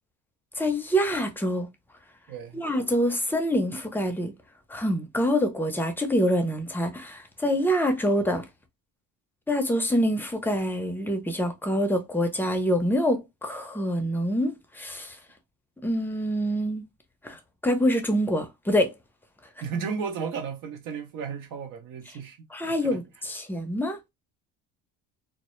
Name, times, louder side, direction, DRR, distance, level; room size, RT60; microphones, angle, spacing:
voice 1, 0.6-1.7 2.5-4.3 4.7-8.4 9.5-15.2 15.8-16.8 17.2-18.9 22.5-24.0, equal, 5° left, 0.5 m, -26 dB
voice 2, 2.3-2.7 19.6-22.4 22.7-23.0, right 6 dB, 65° right, 0.7 m, -34 dB
2.1 x 2.0 x 2.9 m
cardioid pair, 100°, 35 cm